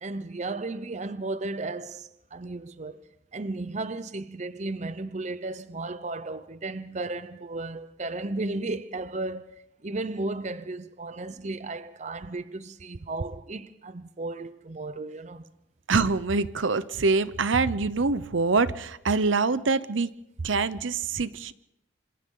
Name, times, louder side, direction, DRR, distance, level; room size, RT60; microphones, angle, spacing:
voice 1, 0.0-3.0 3.3-9.5 9.8-15.5, right 2 dB, 35° right, 0.7 m, -34 dB
voice 2, 15.9-20.1 20.4-21.5, right 4 dB, 75° right, 0.8 m, -25 dB
27.0 x 27.0 x 3.9 m
head